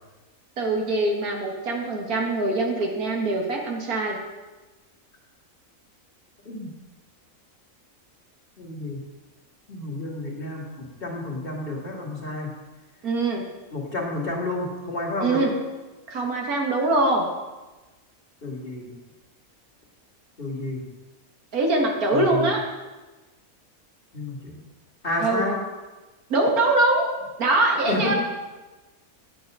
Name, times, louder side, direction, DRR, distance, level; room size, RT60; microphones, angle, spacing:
voice 1, 0.6-4.2 13.0-13.4 15.2-15.5 16.1-17.3 21.5-22.6 25.2-25.4 26.3-27.1 27.4-28.1, right 2 dB, 85° right, 0 dB, 2.0 m, -23 dB
voice 2, 8.6-9.0 9.7-12.5 13.7-15.5 18.4-18.9 20.4-20.8 22.1-22.5 24.1-24.6 25.0-25.6 27.9-28.1, left 2 dB, 40° left, -2 dB, 2.3 m, -30 dB
9.2 x 9.0 x 5.4 m, 1.2 s
omnidirectional pair, 1.5 m